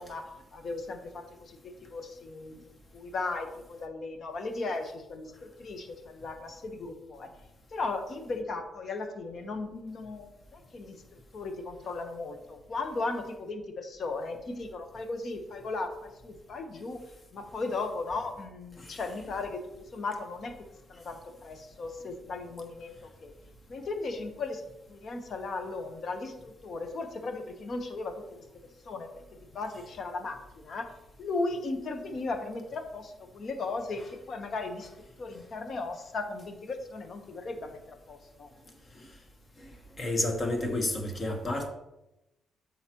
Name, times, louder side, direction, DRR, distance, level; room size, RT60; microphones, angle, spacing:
voice 1, 0.0-7.3 7.7-17.0 17.3-19.6 19.9-20.5 20.9-23.3 23.7-24.6 24.9-28.5 28.8-29.1 29.5-30.9 31.2-38.5, left 3 dB, 50° left, 1.1 m, -36 dB
voice 2, 39.6-41.7, left 2 dB, 35° left, 1.3 m, -31 dB
8.1 x 5.6 x 3.0 m
cardioid pair, 90°, 0 cm